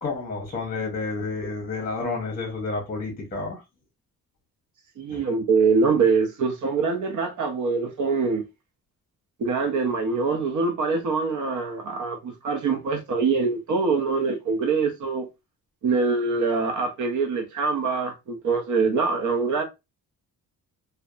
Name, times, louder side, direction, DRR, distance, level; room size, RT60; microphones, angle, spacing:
voice 1, 0.0-3.6 5.1-5.2, left 3 dB, 20° left, 0.8 m, -30 dB
voice 2, 5.0-8.4 9.4-15.3 15.8-19.6, right 4 dB, 50° right, 0.7 m, -24 dB
2.7 x 2.1 x 2.3 m
cardioid pair, 135°, 37 cm